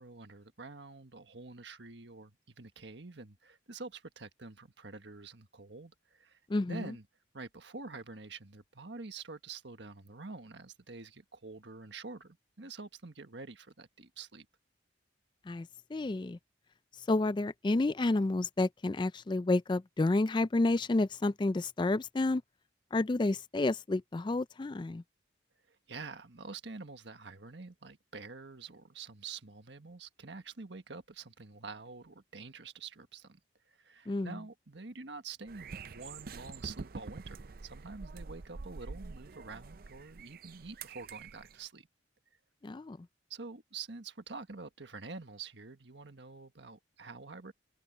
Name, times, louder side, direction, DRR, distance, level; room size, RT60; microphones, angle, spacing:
voice 1, 0.0-6.4 6.7-7.1 7.3-14.5 25.7-33.4 33.7-41.9 43.3-47.5, right 4 dB, 70° right, 1.5 m, -47 dB
voice 2, 6.5-6.9 15.5-16.4 17.1-22.4 22.9-25.0 34.1-34.4 42.6-43.1, left 2 dB, 25° left, 0.3 m, -30 dB
sound 1, 35.5-41.7, right 4 dB, 50° right, 0.5 m, -46 dB
head